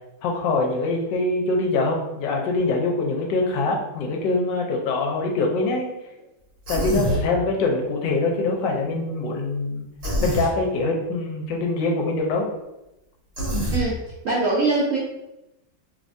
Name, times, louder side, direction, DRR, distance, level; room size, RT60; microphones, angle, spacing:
voice 1, 0.2-5.9 6.7-9.9 10.2-12.5, left 3 dB, 80° left, 0 dB, 1.3 m, -24 dB
Human voice, 6.6-7.2 10.0-10.5 13.4-13.8, right 1 dB, 40° right, 1.2 m, -24 dB
voice 2, 14.2-15.0, right 3 dB, 85° right, -4 dB, 0.7 m, -22 dB
3.2 x 3.2 x 2.6 m, 0.93 s
omnidirectional pair, 2.0 m